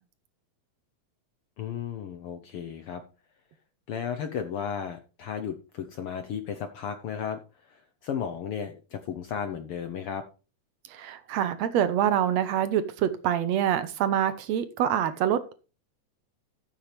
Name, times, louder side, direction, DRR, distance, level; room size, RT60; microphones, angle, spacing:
voice 1, 1.6-3.0 3.9-10.2, left 7 dB, 70° left, 8 dB, 1.4 m, -34 dB
voice 2, 10.9-15.5, right 10 dB, 70° right, 12 dB, 1.9 m, -26 dB
14.0 x 7.3 x 3.3 m, 0.33 s
omnidirectional pair, 3.4 m